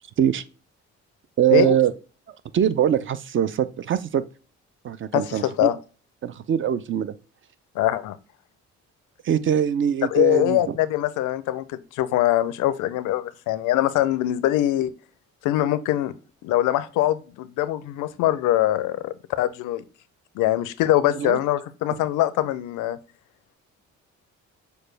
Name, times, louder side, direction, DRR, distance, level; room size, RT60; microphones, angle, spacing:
voice 1, 1.4-1.9 2.5-4.2 4.8-5.7 6.2-7.1 9.2-10.8 21.1-21.4, right 9 dB, 40° right, 0.4 m, -22 dB
voice 2, 5.1-5.8 7.8-8.2 10.1-14.9 15.4-16.1 16.4-19.8 20.4-23.0, left 13 dB, 90° left, 0.5 m, -23 dB
6.6 x 2.2 x 3.2 m
cardioid pair, 90°, 30 cm